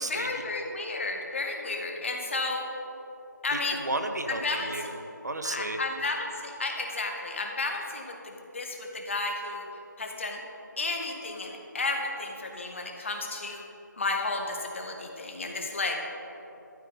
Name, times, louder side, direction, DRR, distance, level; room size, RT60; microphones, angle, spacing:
voice 1, 0.0-2.6 3.4-3.8 4.3-4.7 5.4-9.7 10.0-10.4 10.8-13.6 14.0-16.0, left 3 dB, 40° left, 2 dB, 1.6 m, -32 dB
voice 2, 3.5-5.8, right 2 dB, 60° right, 6 dB, 1.1 m, -33 dB
13.0 x 12.0 x 4.1 m, 3.0 s
figure-of-eight pair, 160°, 10 cm